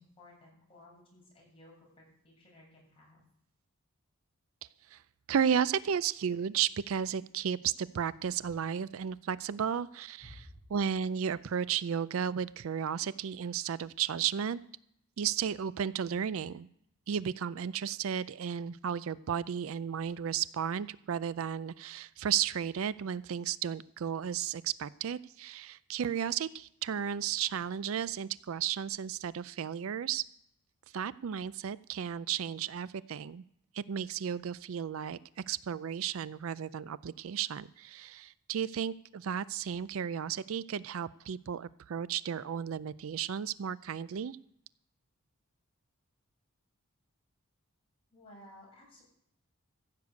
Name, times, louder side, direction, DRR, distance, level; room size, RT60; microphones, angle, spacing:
voice 1, 0.0-3.2 10.2-10.6 48.1-49.0, left 1 dB, 25° left, -4 dB, 7.2 m, -55 dB
voice 2, 5.3-10.4 10.7-14.6 15.2-16.7 17.1-30.2 30.9-33.4 33.7-35.2 35.5-44.4, right 8 dB, 65° right, 17 dB, 0.4 m, -33 dB
15.0 x 6.8 x 8.2 m, 0.73 s
head